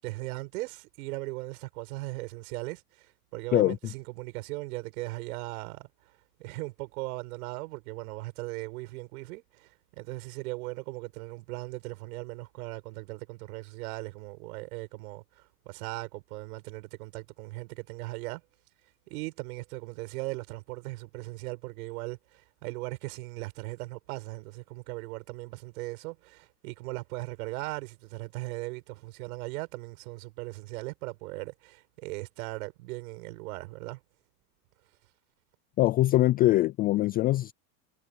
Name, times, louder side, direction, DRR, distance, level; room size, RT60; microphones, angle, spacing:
voice 1, 0.0-5.9 6.4-18.4 19.1-34.0, right 22 dB, 65° right, 8.0 m, -38 dB
voice 2, 35.8-37.5, left 16 dB, 20° left, 0.3 m, -23 dB
hypercardioid pair, 115°, 47 cm